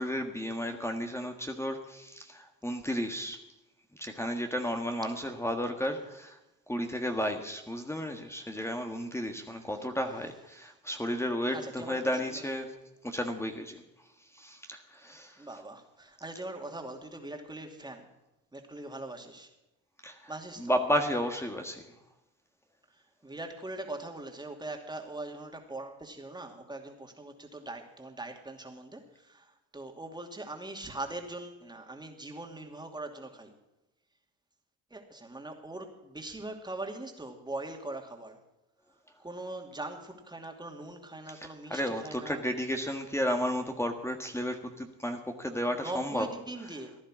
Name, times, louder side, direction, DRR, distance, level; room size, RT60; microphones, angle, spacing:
voice 1, 0.0-3.4 3.9-6.4 6.7-12.7 13.0-13.8 14.3-15.4 20.0-20.3 20.6-21.8 41.3-46.3, equal, 10° left, 4 dB, 1.5 m, -33 dB
voice 2, 11.5-12.5 15.1-18.1 18.5-19.5 20.3-20.7 23.2-33.5 34.9-38.4 39.2-42.4 45.7-47.0, right 2 dB, 15° right, 3 dB, 2.6 m, -41 dB
15.0 x 11.0 x 6.2 m, 0.99 s
supercardioid pair, 75°, 32 cm